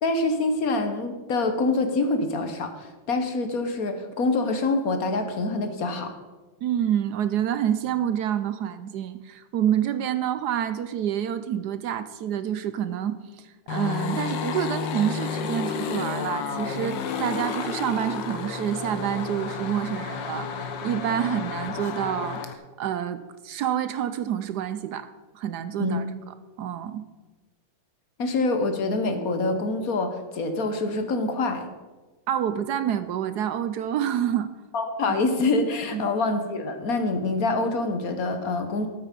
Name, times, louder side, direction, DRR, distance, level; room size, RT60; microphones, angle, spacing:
voice 1, 0.0-6.1 25.8-26.0 28.2-31.7 34.7-38.9, left 3 dB, 55° left, 7 dB, 1.5 m, -25 dB
voice 2, 6.6-25.1 25.3-26.0 26.6-27.0 32.3-34.5 35.9-36.0, right 10 dB, 70° right, 12 dB, 1.1 m, -28 dB
sound 1, 13.7-22.5, left 6 dB, 80° left, 1.7 m, -31 dB
13.0 x 8.9 x 5.2 m, 1.3 s
omnidirectional pair, 1.9 m